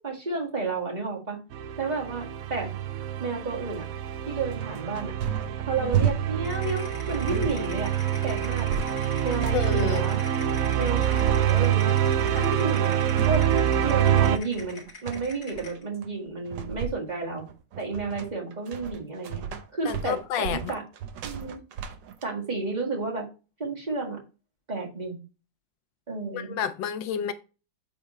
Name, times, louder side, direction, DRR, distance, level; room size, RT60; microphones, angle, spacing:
voice 1, 0.0-1.4 1.8-2.7 3.2-3.8 4.3-5.1 5.7-7.9 8.2-8.7 9.2-10.2 10.7-11.9 12.3-12.9 13.2-13.5 13.8-17.4 17.8-19.4 19.7-20.8 21.2-21.6 22.2-23.2 23.6-24.2 24.7-25.2 26.1-26.6, right 3 dB, 25° right, 1.8 m, -31 dB
sound 1, 1.5-14.4, right 10 dB, 85° right, 0.7 m, -26 dB
sound 2, 3.6-22.2, right 8 dB, 70° right, 1.4 m, -34 dB
sound 3, 6.4-15.8, left 3 dB, 45° left, 2.1 m, -45 dB
voice 2, 9.5-10.0 19.8-20.7 26.3-27.3, left 9 dB, 75° left, 1.3 m, -30 dB
7.8 x 3.5 x 4.2 m
omnidirectional pair, 2.1 m